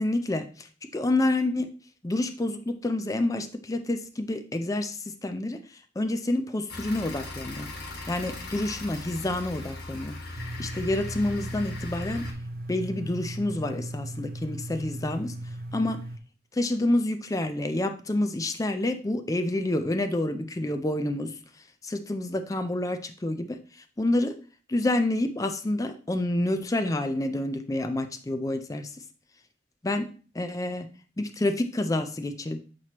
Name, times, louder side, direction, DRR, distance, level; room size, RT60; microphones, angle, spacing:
voice 1, 0.0-1.7 2.0-5.6 6.0-7.7 8.1-10.2 10.6-12.3 12.7-15.3 15.7-16.0 16.5-21.3 21.8-23.6 24.0-24.4 24.7-28.9 29.8-30.1 30.3-30.9 31.2-32.6, left 1 dB, 20° left, 8 dB, 0.4 m, -28 dB
sound 1, 6.7-12.3, left 2 dB, 70° left, 1.6 m, -39 dB
sound 2, 10.4-16.2, right 1 dB, 55° right, 0.5 m, -37 dB
7.5 x 4.4 x 3.0 m, 0.38 s
head